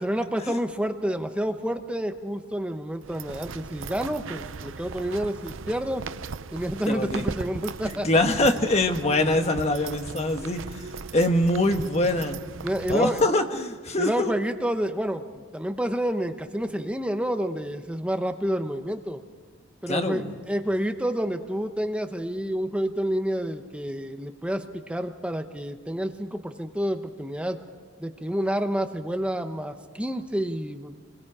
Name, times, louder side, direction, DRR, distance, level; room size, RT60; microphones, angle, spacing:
voice 1, 0.0-6.0 6.5-8.1 12.6-13.2 14.0-19.2 19.8-27.6 28.0-31.0, equal, 5° right, 6 dB, 0.9 m, -29 dB
sound 1, 3.0-13.3, right 5 dB, 75° right, 0.6 m, -38 dB
voice 2, 6.9-7.2 7.8-10.6 11.1-12.4 12.9-14.3 19.9-20.3, left 1 dB, 35° left, 6 dB, 1.4 m, -24 dB
29.0 x 22.0 x 4.9 m, 1.4 s
head